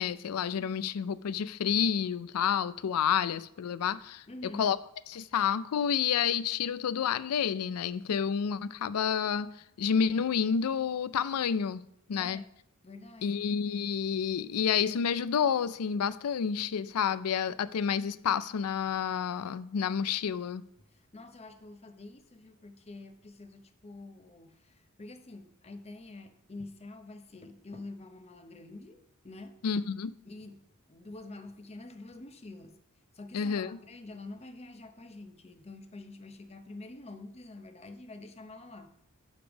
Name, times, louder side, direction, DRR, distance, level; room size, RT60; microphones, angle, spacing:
voice 1, 0.0-4.2 4.6-4.8 5.1-9.5 9.8-11.8 12.1-12.4 13.2-20.6 29.6-30.1 33.3-33.8, left 7 dB, 85° left, 0.4 m, -29 dB
voice 2, 4.3-4.7 12.2-12.5 12.8-13.4 20.9-29.6 30.3-32.8 33.1-38.9, left 2 dB, 30° left, 0.7 m, -47 dB
5.3 x 5.0 x 6.1 m
head